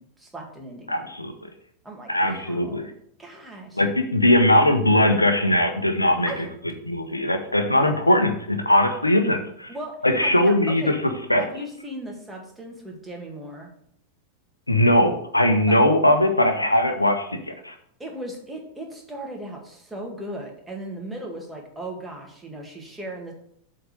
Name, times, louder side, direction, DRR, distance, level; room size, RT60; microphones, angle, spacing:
voice 1, 0.0-1.1 1.8-2.9 3.2-3.8 6.3-6.5 9.7-9.9 10.2-11.0 11.4-13.7 15.7-15.8 18.0-23.3, right 1 dB, 10° right, 0 dB, 1.9 m, -37 dB
voice 2, 0.9-1.3 2.1-2.9 3.8-6.3 6.8-9.7 10.0-10.9 11.3-11.4 14.7-17.7, left 1 dB, 85° left, 6 dB, 0.9 m, -20 dB
7.7 x 3.9 x 6.7 m, 0.67 s
figure-of-eight pair, 90°, 0 cm